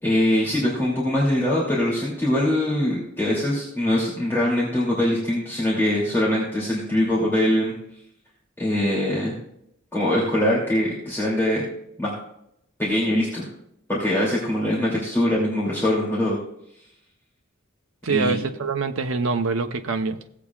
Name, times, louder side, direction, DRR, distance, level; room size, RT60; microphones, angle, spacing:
voice 1, 0.0-7.8 8.6-9.3 9.9-11.7 12.0-12.1 12.8-13.5 13.9-16.4 18.1-18.4, left 1 dB, 10° left, -7 dB, 2.6 m, -22 dB
voice 2, 18.0-20.2, right 4 dB, 70° right, 6 dB, 0.7 m, -24 dB
17.0 x 8.3 x 2.4 m, 0.75 s
head